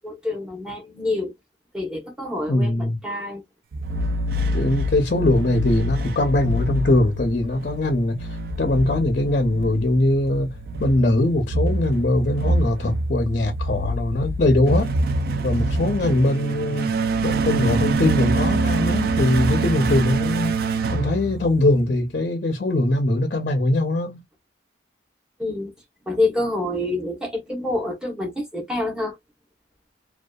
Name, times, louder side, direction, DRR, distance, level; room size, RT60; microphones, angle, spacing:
voice 1, 0.0-1.3 1.7-3.4 25.4-25.7 26.1-29.2, left 2 dB, 5° right, 0.8 m, -27 dB
voice 2, 2.5-3.0 4.5-8.3 8.6-10.5 10.8-15.0 15.4-20.6 20.9-24.2, left 1 dB, 45° left, 0.5 m, -21 dB
sound 1, 3.7-21.9, right 2 dB, 50° right, 0.3 m, -25 dB
2.6 x 2.2 x 2.2 m
head